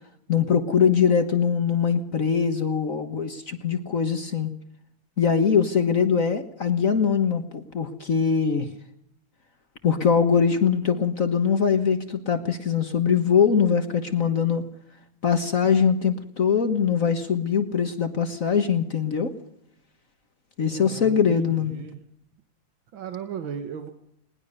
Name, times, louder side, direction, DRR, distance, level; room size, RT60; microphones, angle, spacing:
voice 1, 0.3-4.5 5.2-8.7 9.8-14.6 15.2-19.3 20.6-21.7, left 6 dB, 45° left, 8 dB, 1.6 m, -22 dB
voice 2, 20.7-22.0 22.9-23.9, right 8 dB, 90° right, 8 dB, 2.2 m, -36 dB
20.5 x 19.5 x 6.7 m, 0.73 s
omnidirectional pair, 2.1 m